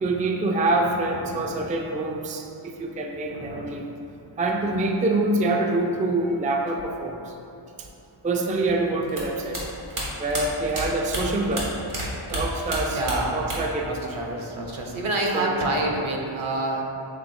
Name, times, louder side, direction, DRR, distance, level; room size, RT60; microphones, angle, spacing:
voice 1, 0.0-3.8 4.4-7.2 8.2-9.6 10.2-11.7 12.3-13.0 13.3-14.1 15.3-15.6, right 2 dB, 20° right, 1 dB, 0.3 m, -25 dB
voice 2, 1.0-1.6 3.3-3.7 11.3-11.6 12.9-13.5 13.8-16.8, right 2 dB, 75° right, -1 dB, 0.8 m, -28 dB
sound 1, 9.1-12.0 12.3-13.8 14.1-14.8, right 1 dB, 90° right, 1.2 m, -31 dB
6.0 x 3.3 x 2.6 m, 2.7 s
wide cardioid pair, 50°, 50 cm